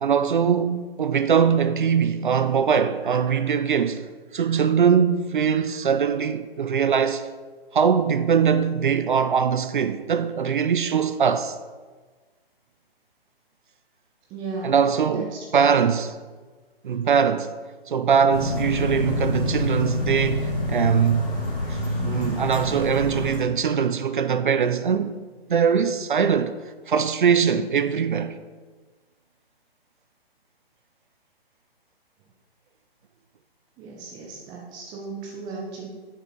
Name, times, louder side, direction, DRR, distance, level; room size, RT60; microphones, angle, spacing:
voice 1, 0.0-7.3 7.7-11.6 14.6-16.2 16.8-17.5 17.9-21.3 21.7-25.1 25.5-26.5 26.9-28.4, right 7 dB, 55° right, 0.5 m, -22 dB
voice 2, 14.3-14.8 15.1-15.4 15.7-15.8 33.8-35.9, right 4 dB, 15° right, 0.9 m, -36 dB
sound 1, 18.3-23.3, left 1 dB, 15° left, 2.8 m, -27 dB
7.4 x 6.9 x 4.5 m
figure-of-eight pair, 135°, 30 cm